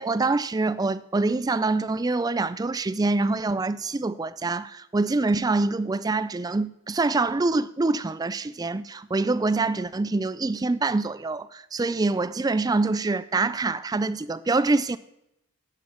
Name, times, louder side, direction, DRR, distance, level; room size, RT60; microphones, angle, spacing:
voice 1, 0.0-15.0, right 3 dB, 15° right, 0.3 m, -25 dB
14.0 x 5.8 x 6.4 m
head